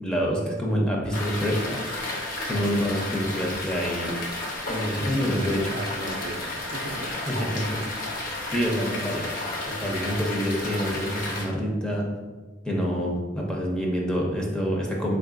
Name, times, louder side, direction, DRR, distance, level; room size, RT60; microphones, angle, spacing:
voice 1, 0.0-4.1 4.7-5.6 7.3-7.8 8.5-9.3 9.8-12.1 12.6-15.2, equal, 5° left, -2 dB, 0.6 m, -27 dB
sound 1, 1.1-11.5, left 2 dB, 50° left, 0.8 m, -32 dB
voice 2, 5.2-7.2 7.7-8.0, right 2 dB, 50° right, 1 dB, 0.4 m, -37 dB
3.8 x 3.7 x 2.4 m, 1.3 s
head